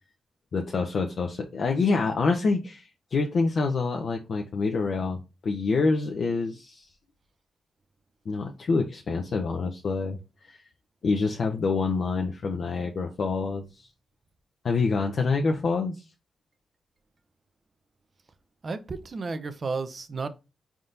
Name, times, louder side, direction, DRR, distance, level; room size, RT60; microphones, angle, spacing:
voice 1, 0.5-5.2 5.4-6.9 8.3-10.6 11.0-13.9 14.6-16.0, left 4 dB, 65° left, 0.6 m, -26 dB
voice 2, 18.6-20.3, right 4 dB, 50° right, 0.6 m, -32 dB
4.2 x 3.5 x 2.5 m
cardioid pair, 55°, 0 cm